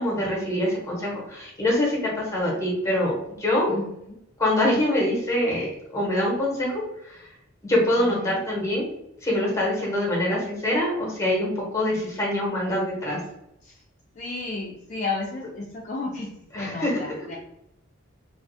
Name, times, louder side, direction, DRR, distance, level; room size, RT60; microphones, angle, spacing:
voice 1, 0.0-3.1 3.4-3.7 4.4-7.2 7.6-8.9 9.2-13.2 16.5-17.0, left 1 dB, 15° left, -4 dB, 0.9 m, -24 dB
voice 2, 3.7-4.2 8.0-8.4 13.6-13.8 14.1-16.3 16.5-17.4, left 3 dB, 35° left, -3 dB, 0.3 m, -33 dB
2.3 x 2.3 x 2.5 m, 0.81 s
head